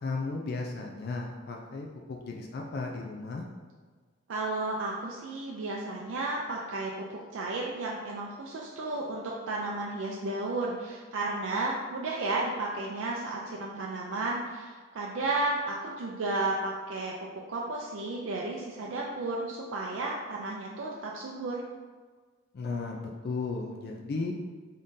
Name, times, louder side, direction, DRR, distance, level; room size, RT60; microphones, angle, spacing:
voice 1, 0.0-3.4 22.5-24.3, left 3 dB, 55° left, 1 dB, 0.4 m, -35 dB
voice 2, 4.3-21.6, right 2 dB, 80° right, -3 dB, 0.4 m, -33 dB
3.7 x 3.6 x 2.6 m, 1.5 s
head